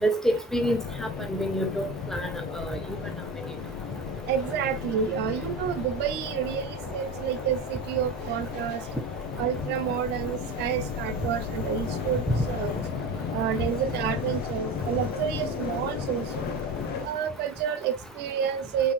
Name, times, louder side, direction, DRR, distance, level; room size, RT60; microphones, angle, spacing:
voice 1, 0.0-1.9 2.1-2.3 2.5-2.8, equal, 5° left, 1.0 m, -27 dB
sound 1, 0.6-17.1, left 6 dB, 80° left, 1.1 m, -34 dB
sound 2, 2.9-17.1, left 3 dB, 60° left, 1.8 m, -46 dB
voice 2, 4.3-8.8 9.4-12.7 13.3-16.5 17.0-18.9, right 9 dB, 80° right, 0.7 m, -29 dB
5.4 x 3.7 x 2.4 m
cardioid pair, 110°, 17 cm